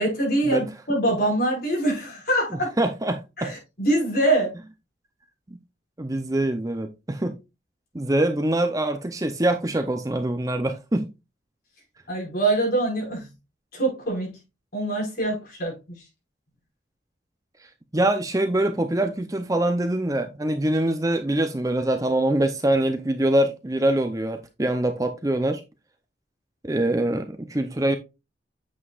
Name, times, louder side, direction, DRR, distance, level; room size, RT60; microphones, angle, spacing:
voice 1, 0.0-2.7 3.4-4.5 12.1-13.3 13.7-14.3 14.7-15.7, right 1 dB, 50° left, 5.5 m, -24 dB
voice 2, 2.5-3.5 5.5-5.6 6.0-7.4 7.9-11.1 17.9-25.6 26.6-28.0, right 1 dB, 20° right, 0.6 m, -24 dB
8.5 x 7.4 x 2.4 m
head